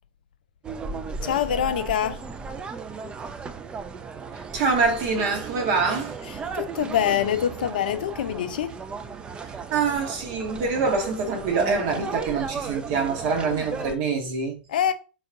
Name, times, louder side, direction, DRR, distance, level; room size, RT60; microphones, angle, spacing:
sound 1, 0.6-14.0, right 5 dB, 20° right, 0.4 m, -35 dB
voice 1, 1.2-2.2 6.5-8.8 14.7-14.9, left 9 dB, 65° left, 0.4 m, -25 dB
voice 2, 4.3-6.2 9.4-14.6, right 4 dB, 50° right, 0.9 m, -25 dB
3.4 x 2.3 x 3.9 m
figure-of-eight pair, 95°, 5 cm